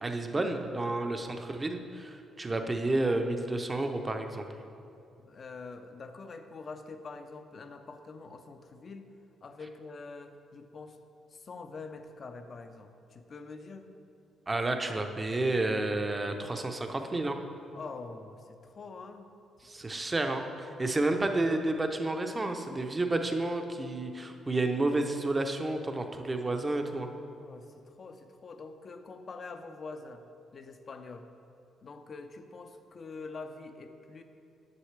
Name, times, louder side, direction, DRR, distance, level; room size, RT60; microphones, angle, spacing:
voice 1, 0.0-4.5 14.5-17.4 19.6-27.1, right 2 dB, 25° right, 5 dB, 0.7 m, -30 dB
voice 2, 5.2-9.1 9.4-11.0 11.3-13.9 17.7-19.3 19.9-20.3 20.7-21.0 27.3-30.2 30.5-31.3 31.8-34.2, left 4 dB, 45° left, 8 dB, 0.6 m, -45 dB
9.7 x 7.0 x 3.3 m, 2.7 s
cardioid pair, 90°, 0 cm